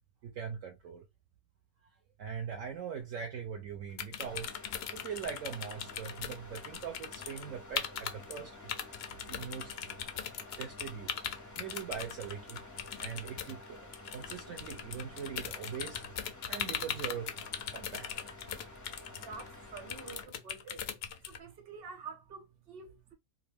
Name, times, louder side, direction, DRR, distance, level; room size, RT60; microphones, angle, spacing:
voice 1, 0.2-1.0 2.2-4.5 4.9-8.5 9.3-10.0 10.6-11.1 11.6-12.7 12.9-13.9 14.1-16.1 16.5-17.3 17.7-18.2, right 7 dB, 65° right, 1.0 m, -41 dB
sound 1, 4.0-7.5 7.7-8.4 8.7-21.4, left 8 dB, 70° left, 0.6 m, -39 dB
sound 2, 4.2-20.2, left 2 dB, 25° left, 0.4 m, -51 dB
voice 2, 19.2-21.0 21.2-23.1, right 5 dB, 45° right, 1.1 m, -48 dB
2.9 x 2.5 x 3.4 m
omnidirectional pair, 1.5 m